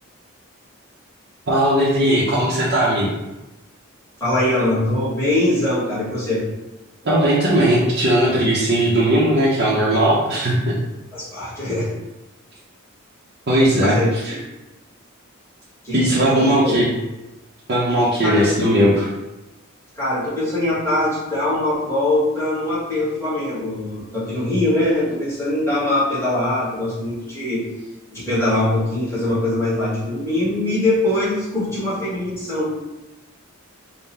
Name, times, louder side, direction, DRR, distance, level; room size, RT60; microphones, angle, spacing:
voice 1, 1.5-3.1 7.0-10.7 13.5-14.0 14.2-14.3 15.9-16.9 17.7-19.1, right 1 dB, 50° right, -8 dB, 0.7 m, -18 dB
voice 2, 4.2-6.4 11.1-11.9 13.8-14.1 15.8-16.7 18.2-18.8 20.0-27.6 28.1-32.7, left 1 dB, 10° left, -10 dB, 1.4 m, -22 dB
3.7 x 2.2 x 4.1 m, 1.0 s
head